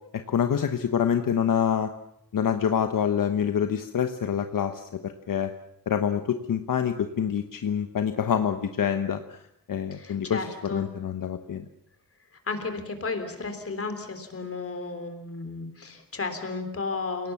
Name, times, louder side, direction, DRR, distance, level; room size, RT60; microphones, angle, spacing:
voice 1, 0.3-1.9 2.3-5.5 5.9-9.4 9.7-11.6, left 8 dB, 70° left, 7 dB, 1.2 m, -26 dB
voice 2, 9.9-10.9 12.5-17.3, left 4 dB, 40° left, 7 dB, 3.6 m, -33 dB
29.0 x 18.5 x 7.2 m, 0.77 s
wide cardioid pair, 145°, 34 cm